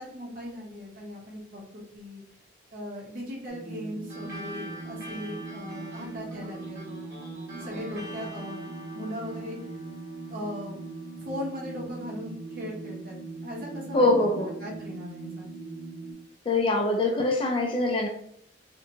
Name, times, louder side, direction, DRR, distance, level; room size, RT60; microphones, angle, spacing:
voice 1, 0.0-2.2 2.7-6.8 7.4-9.6 10.3-10.8 11.2-13.2 13.4-15.5, left 1 dB, 50° right, -2 dB, 0.8 m, -38 dB
sound 1, 3.5-16.1, right 3 dB, 10° left, 1.4 m, -40 dB
sound 2, 4.1-12.9, left 1 dB, 15° right, 1.4 m, -46 dB
voice 2, 13.9-14.5 16.5-18.1, left 2 dB, 30° left, 2 dB, 0.3 m, -23 dB
2.7 x 2.2 x 2.7 m, 0.68 s
head